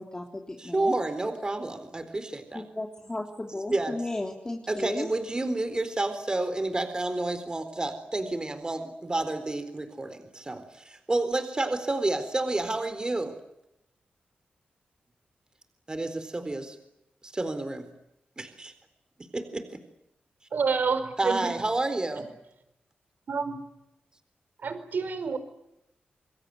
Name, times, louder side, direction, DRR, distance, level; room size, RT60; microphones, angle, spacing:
voice 1, 0.0-1.0 2.5-5.1, left 2 dB, 20° left, 2 dB, 3.2 m, -34 dB
voice 2, 0.6-2.6 3.7-4.0 4.7-13.3 15.9-16.8 17.2-17.9 18.4-18.7 19.3-19.7 21.2-22.3, right 2 dB, 25° right, 10 dB, 4.0 m, -30 dB
voice 3, 20.5-21.5 23.3-23.6 24.6-25.4, right 5 dB, 60° right, 11 dB, 4.8 m, -28 dB
27.5 x 22.5 x 9.5 m, 0.83 s
wide cardioid pair, 105°, 3 cm